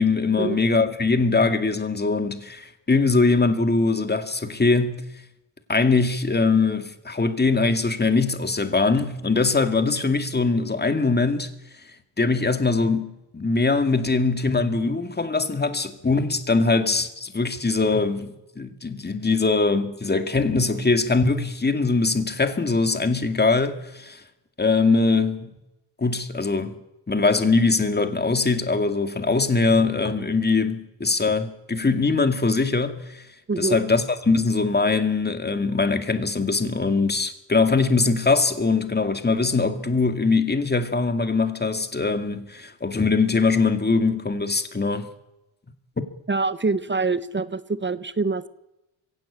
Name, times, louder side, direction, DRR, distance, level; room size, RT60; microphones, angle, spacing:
voice 1, 0.0-5.0 5.7-11.5 12.2-24.2 24.6-25.5 26.0-26.8 27.1-33.2 33.6-45.1, left 3 dB, 20° left, 2.1 m, -22 dB
voice 2, 46.3-48.5, right 4 dB, 25° right, 0.9 m, -25 dB
23.0 x 16.5 x 8.6 m
cardioid pair, 100°, 48 cm